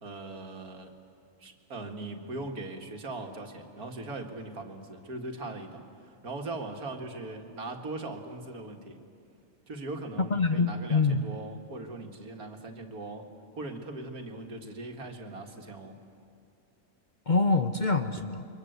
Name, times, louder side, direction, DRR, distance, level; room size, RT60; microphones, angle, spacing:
voice 1, 0.0-0.9 1.4-9.0 9.7-13.3 13.6-16.0, right 2 dB, 80° right, 4 dB, 2.4 m, -40 dB
voice 2, 10.2-11.2 17.3-18.4, left 3 dB, 40° left, 8 dB, 0.8 m, -25 dB
28.5 x 24.0 x 8.1 m, 2.4 s
omnidirectional pair, 1.5 m